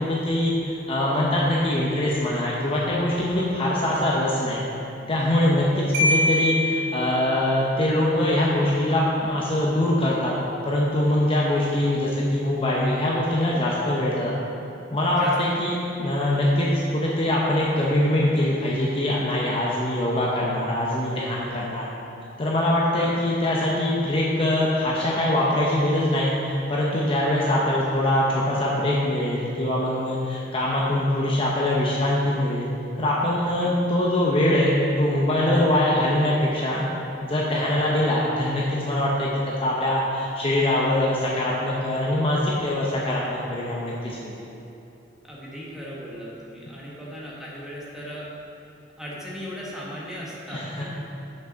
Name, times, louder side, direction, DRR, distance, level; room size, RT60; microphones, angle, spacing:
voice 1, 0.0-4.6 5.1-10.3 10.6-14.3 14.9-21.9 22.4-32.7 33.0-36.9 37.2-39.3 39.6-44.3 50.5-50.8, left 1 dB, 30° left, -5 dB, 0.8 m, -23 dB
Marimba xylophone, 5.9-7.7, left 1 dB, 90° right, 1.8 m, -24 dB
voice 2, 45.2-48.3 49.0-50.8, equal, 5° right, -6 dB, 1.5 m, -37 dB
6.6 x 6.0 x 5.6 m, 2.8 s
head